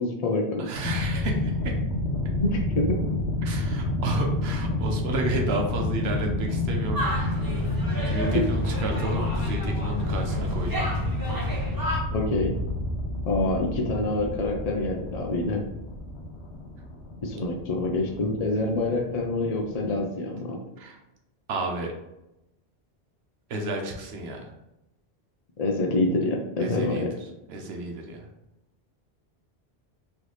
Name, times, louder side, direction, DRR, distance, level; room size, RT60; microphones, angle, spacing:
voice 1, 0.0-0.7 2.4-3.0 8.3-8.4 12.1-12.6 13.3-15.6 17.2-20.6 25.6-27.1, left 2 dB, 45° left, 1 dB, 0.5 m, -26 dB
voice 2, 0.6-1.8 3.4-7.5 8.0-10.9 11.5-11.6 20.8-21.0 21.5-21.9 23.5-24.6 26.6-27.1 27.5-28.3, right 2 dB, 75° right, 2 dB, 1.0 m, -32 dB
sound 1, 0.8-20.0, left 1 dB, 85° left, 1.1 m, -29 dB
sound 2, 6.9-12.0, equal, 20° right, 0.8 m, -33 dB
3.2 x 3.2 x 3.9 m, 0.91 s
omnidirectional pair, 1.1 m